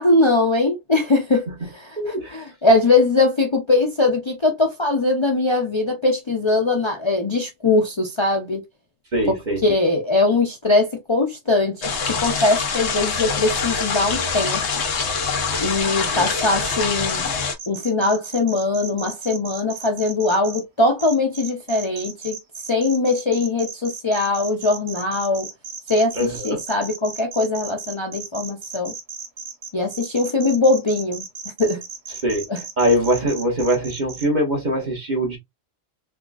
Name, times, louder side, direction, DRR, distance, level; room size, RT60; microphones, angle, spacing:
voice 1, 0.0-2.0 2.3-8.6 9.3-9.4 9.6-14.8 15.6-17.3 17.7-22.4 22.7-25.5 25.9-28.9 29.7-31.2 31.6-31.8 32.5-32.6, left 2 dB, 30° left, 0.6 m, -21 dB
voice 2, 2.0-2.4 9.1-9.6 16.1-16.3 26.1-26.6 32.2-32.5 32.8-35.4, equal, 45° right, 1.6 m, -22 dB
sound 1, 11.8-17.6, left 5 dB, 80° left, 1.0 m, -24 dB
sound 2, 17.6-20.6 21.0-34.3, right 6 dB, 70° right, 1.1 m, -35 dB
3.7 x 3.0 x 2.3 m
omnidirectional pair, 1.1 m